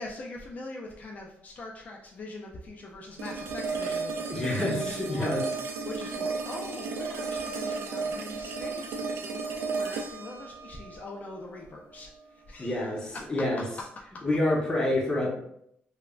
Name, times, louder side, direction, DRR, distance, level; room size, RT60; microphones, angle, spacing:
voice 1, 0.0-5.4 5.8-13.2 14.1-14.2, left 2 dB, 40° left, 0 dB, 0.3 m, -42 dB
sound 1, 3.2-12.2, right 4 dB, 80° right, 0.4 m, -34 dB
voice 2, 4.3-5.4 12.6-13.6 14.2-15.3, left 1 dB, 15° left, -3 dB, 0.8 m, -27 dB
3.2 x 2.0 x 2.3 m, 0.72 s
cardioid pair, 120°, 4 cm